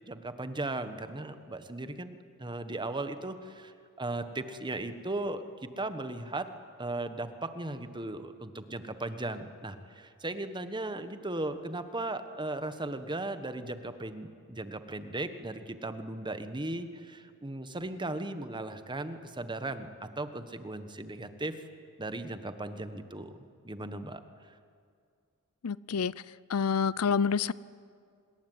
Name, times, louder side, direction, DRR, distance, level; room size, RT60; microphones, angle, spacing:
voice 1, 0.1-6.5 6.8-21.6 22.0-24.2, right 2 dB, 20° right, 10 dB, 1.3 m, -37 dB
voice 2, 25.6-26.1 26.5-27.5, left 6 dB, 80° left, 20 dB, 0.6 m, -27 dB
26.5 x 20.5 x 9.2 m, 2.2 s
head